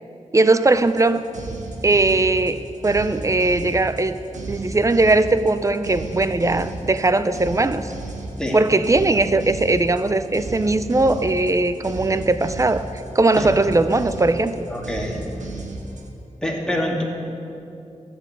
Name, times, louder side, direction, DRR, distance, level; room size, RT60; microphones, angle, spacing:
voice 1, 0.3-1.2 1.8-4.2 4.5-7.9 8.5-12.9 13.1-14.7, right 2 dB, 25° right, 12 dB, 0.5 m, -19 dB
sound 1, 0.7-16.1, right 2 dB, 75° right, 1.6 m, -34 dB
voice 2, 14.7-15.2 16.4-17.0, left 1 dB, 5° left, -2 dB, 2.2 m, -25 dB
14.5 x 7.1 x 8.3 m, 2.7 s
wide cardioid pair, 90°, 13 cm